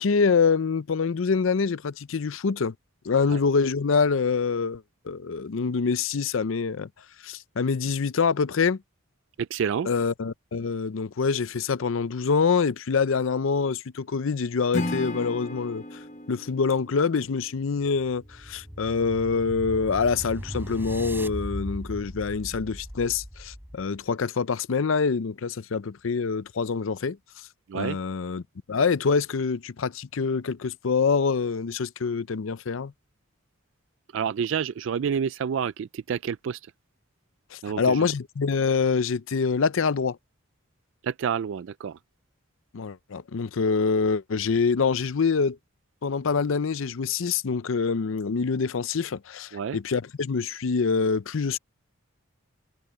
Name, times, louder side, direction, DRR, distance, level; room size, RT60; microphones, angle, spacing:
voice 1, 0.0-2.7 3.0-6.9 7.2-8.8 9.9-15.8 16.3-27.2 27.7-28.4 28.7-32.9 37.5-40.2 42.7-45.6 46.0-51.6, left 5 dB, 70° left, 0.5 m, -25 dB
voice 2, 9.5-9.9 27.7-28.0 34.1-36.6 37.6-38.1 41.0-42.0 49.5-49.8, right 7 dB, 65° right, 0.3 m, -29 dB
Acoustic guitar / Strum, 14.7-17.9, left 2 dB, 35° left, 1.2 m, -35 dB
sound 1, 18.1-24.0, equal, 10° right, 3.9 m, -38 dB
head